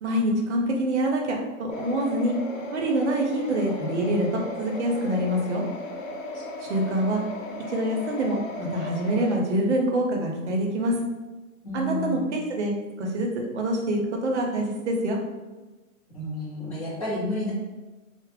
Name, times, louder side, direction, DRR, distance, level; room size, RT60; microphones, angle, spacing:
voice 1, 0.0-2.4 2.7-5.6 6.6-7.2 7.7-11.0 11.7-13.3 13.5-15.2, right 1 dB, 55° right, 1 dB, 0.6 m, -26 dB
sound 1, 1.7-9.4, left 2 dB, 65° left, 0.6 m, -36 dB
voice 2, 11.6-12.3 16.1-17.5, left 1 dB, 25° left, -8 dB, 0.8 m, -31 dB
2.2 x 2.0 x 3.3 m, 1.2 s
hypercardioid pair, 175°, 41 cm